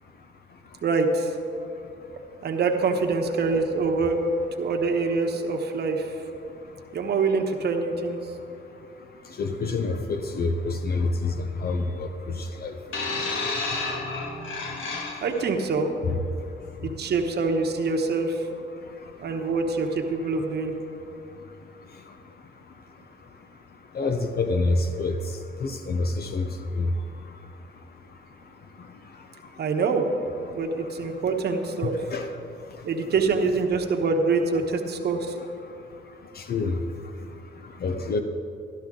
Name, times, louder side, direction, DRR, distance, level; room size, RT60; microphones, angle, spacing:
voice 1, 0.8-1.3 2.4-6.1 6.9-8.2 15.2-15.9 16.8-18.4 19.2-20.7 29.6-30.1 30.5-31.9 32.8-35.3, right 4 dB, 55° right, 4 dB, 1.1 m, -25 dB
voice 2, 9.4-12.1 12.4-12.8 16.1-16.2 23.9-25.1 25.6-26.5 26.7-26.9 31.8-32.3 36.4-36.8 37.8-38.2, left 3 dB, 50° left, 6 dB, 0.8 m, -27 dB
sound 1, 12.9-15.5 16.4-16.6, left 3 dB, 80° left, 1.7 m, -30 dB
12.0 x 12.0 x 3.8 m, 2.6 s
cardioid pair, 90°, 20 cm